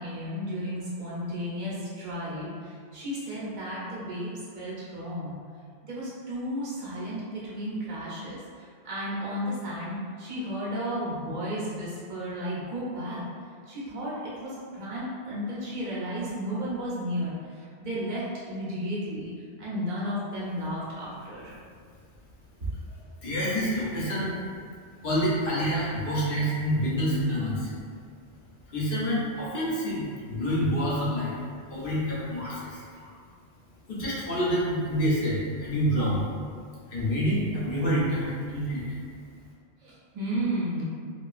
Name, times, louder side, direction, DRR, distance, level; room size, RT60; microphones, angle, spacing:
voice 1, 0.0-5.3 5.8-13.2 13.7-19.3 19.6-21.6 33.0-33.1 39.8-40.8, equal, 50° right, -8 dB, 0.8 m, -33 dB
voice 2, 23.2-24.4 25.0-27.7 28.7-31.3 31.7-32.8 33.9-36.2 36.9-38.8, equal, 65° left, -7 dB, 0.9 m, -27 dB
2.8 x 2.3 x 2.4 m, 2.1 s
omnidirectional pair, 1.1 m